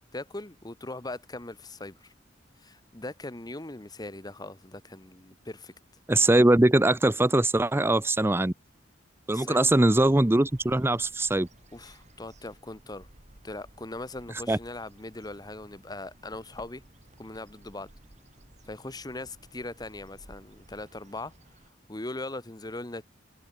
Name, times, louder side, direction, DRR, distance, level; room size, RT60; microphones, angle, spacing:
voice 1, 0.1-2.1 2.6-5.7 9.3-9.7 11.7-13.1 13.4-16.8 17.2-17.9 18.7-21.3 21.9-23.1, left 2 dB, 20° left, 1.2 m, -40 dB
voice 2, 6.1-8.5 9.3-11.5 14.5-14.6, right 1 dB, 10° right, 0.6 m, -22 dB
sound 1, 9.6-21.7, right 1 dB, 40° right, 3.2 m, -55 dB
head